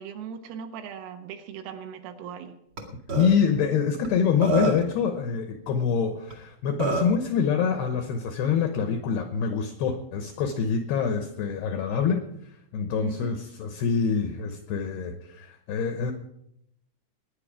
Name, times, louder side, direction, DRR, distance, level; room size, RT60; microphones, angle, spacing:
voice 1, 0.0-2.6 13.0-13.4, right 7 dB, 80° right, 5 dB, 3.8 m, -39 dB
Burping eructation, 2.8-2.9 3.1-3.3 4.0-4.1 4.4-4.9 6.3-6.4 6.8-7.2, right 5 dB, 65° right, 1.3 m, -26 dB
voice 2, 3.2-12.2 12.7-16.1, left 6 dB, 80° left, 7 dB, 2.3 m, -25 dB
20.5 x 9.6 x 4.9 m, 0.75 s
omnidirectional pair, 6.0 m